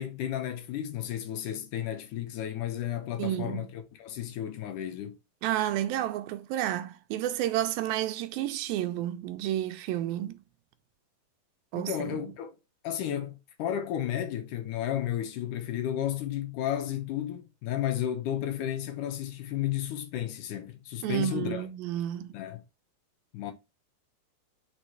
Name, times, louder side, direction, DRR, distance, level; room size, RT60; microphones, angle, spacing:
voice 1, 0.0-5.1 11.7-12.5 12.8-21.7 22.3-22.6 23.3-23.5, left 11 dB, 70° left, 2.1 m, -33 dB
voice 2, 3.2-3.6 5.4-10.4 11.7-12.2 21.0-22.3, right 12 dB, 90° right, 2.5 m, -31 dB
5.4 x 4.7 x 4.5 m
omnidirectional pair, 4.1 m